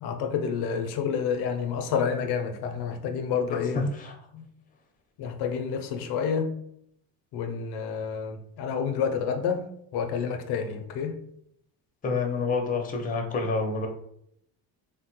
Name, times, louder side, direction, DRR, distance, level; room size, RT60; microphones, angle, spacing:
voice 1, 0.0-3.8 4.3-4.4 5.2-6.5 7.3-9.7 9.9-11.2, left 6 dB, 75° left, 0.5 m, -29 dB
voice 2, 3.5-4.1 12.0-13.9, left 3 dB, 20° left, 0.5 m, -28 dB
3.2 x 2.1 x 2.9 m
cardioid pair, 110°, 40 cm